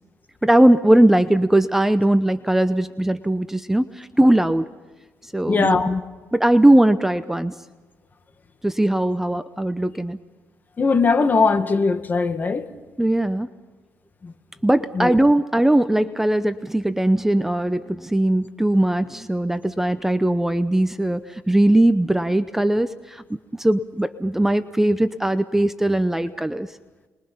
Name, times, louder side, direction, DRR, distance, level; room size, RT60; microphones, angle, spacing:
voice 1, 0.4-4.7 5.3-5.8 6.3-7.5 8.6-10.2 13.0-13.5 14.6-23.2 23.6-26.7, right 1 dB, 5° right, 0.8 m, -19 dB
voice 2, 5.5-6.0 10.8-12.7 14.2-14.3 14.9-15.1, left 4 dB, 35° left, 1.9 m, -20 dB
29.0 x 22.0 x 5.7 m
cardioid pair, 100°, 6 cm